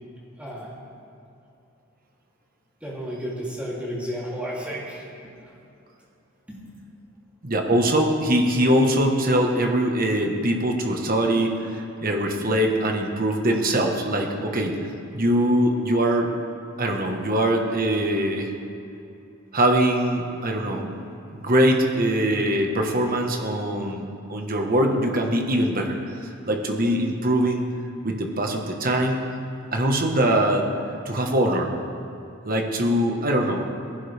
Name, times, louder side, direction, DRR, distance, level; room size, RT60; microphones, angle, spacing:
voice 1, 0.4-0.7 2.8-5.1 6.5-6.6, equal, 5° right, -6 dB, 3.1 m, -32 dB
voice 2, 7.4-14.9 15.1-16.3 16.8-18.5 19.5-20.9 21.3-27.6 28.0-29.2 29.7-30.7 31.0-31.7 32.4-33.7, right 1 dB, 40° right, 2 dB, 1.4 m, -22 dB
19.0 x 15.5 x 3.5 m, 2.7 s
head